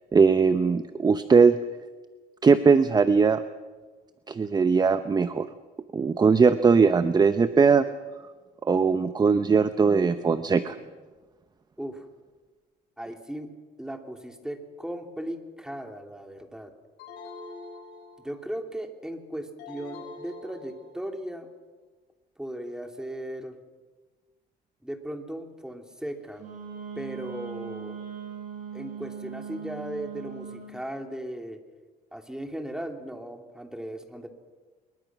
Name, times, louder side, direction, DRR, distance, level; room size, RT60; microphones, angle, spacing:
voice 1, 0.1-1.6 2.4-3.4 4.3-5.5 5.9-7.8 8.6-10.8, right 5 dB, 25° right, 11 dB, 0.8 m, -20 dB
voice 2, 13.0-13.5 13.8-16.7 18.2-21.5 22.4-23.6 24.8-26.5 26.9-28.0 28.7-31.6 32.1-34.3, right 1 dB, 5° right, 5 dB, 2.8 m, -37 dB
sound 1, 17.0-18.5 19.6-21.2, left 3 dB, 85° left, 6.5 m, -44 dB
Wind instrument woodwind instrument, 26.4-30.8, right 7 dB, 45° right, 7.6 m, -39 dB
25.0 x 22.0 x 6.1 m, 1.3 s
cardioid pair, 110°, 17 cm